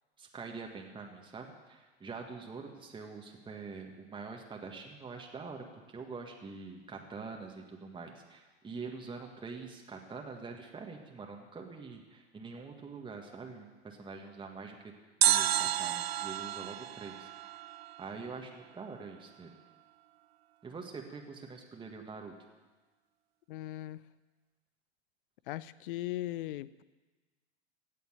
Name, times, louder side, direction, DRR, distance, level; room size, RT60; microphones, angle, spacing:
voice 1, 0.2-14.8 15.2-17.3 18.0-19.5 20.6-22.3, right 4 dB, 15° right, 2 dB, 1.8 m, -45 dB
sound 1, 15.2-18.3 18.5-18.6, right 12 dB, 65° right, 0.7 m, -31 dB
voice 2, 23.5-24.0 25.5-26.8, left 15 dB, 50° left, 19 dB, 0.6 m, -38 dB
17.0 x 7.9 x 9.0 m, 1.3 s
figure-of-eight pair, 95°, 33 cm